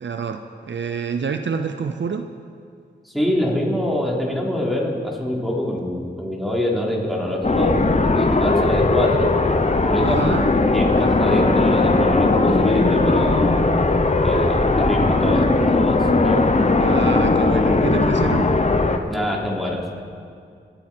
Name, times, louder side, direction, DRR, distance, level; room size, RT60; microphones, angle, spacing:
voice 1, 0.0-2.3 10.0-10.5 16.8-18.5, right 6 dB, 65° right, 7 dB, 0.7 m, -27 dB
voice 2, 3.1-7.8 8.0-9.3 9.9-10.3 10.7-13.5 14.2-16.4 19.1-20.0, equal, ahead, -3 dB, 3.5 m, -24 dB
sound 1, 7.4-19.0, left 3 dB, 35° left, 1.0 m, -18 dB
27.5 x 9.2 x 4.5 m, 2.3 s
cardioid pair, 50°, 20 cm